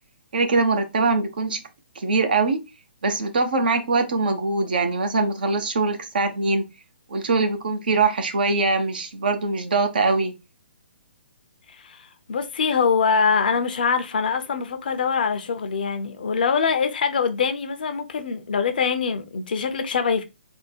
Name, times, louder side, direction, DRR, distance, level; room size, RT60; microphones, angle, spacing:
voice 1, 0.3-1.6 2.0-2.6 3.0-6.7 7.1-10.3, right 3 dB, 55° right, 0.8 m, -22 dB
voice 2, 11.7-20.2, left 6 dB, 50° left, 0.7 m, -24 dB
3.5 x 2.2 x 4.3 m
figure-of-eight pair, 130°, 6 cm